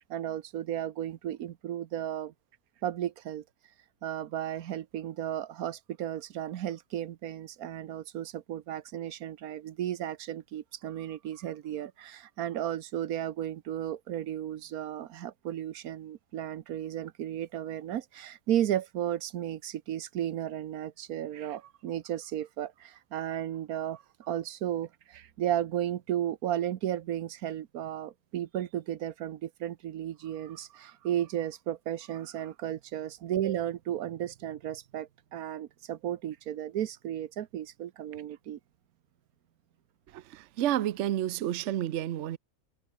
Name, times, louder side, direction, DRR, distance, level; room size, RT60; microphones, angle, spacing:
voice 1, 0.1-2.3 2.8-3.4 4.0-38.6, right 11 dB, 85° right, 1.3 m, -34 dB
voice 2, 40.1-42.4, right 12 dB, 65° right, 0.9 m, -30 dB
omnidirectional pair, 1.5 m